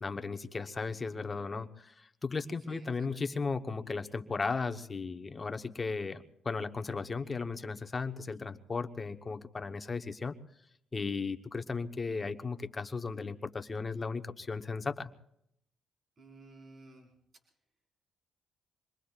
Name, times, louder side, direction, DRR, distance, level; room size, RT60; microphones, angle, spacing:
voice 1, 0.0-10.3 10.9-15.1, left 4 dB, 30° left, 8 dB, 1.0 m, -36 dB
voice 2, 2.7-3.1 16.2-17.1, right 2 dB, 45° right, 0 dB, 4.8 m, -54 dB
26.5 x 22.0 x 2.5 m, 0.77 s
cardioid pair, 90°, 0 cm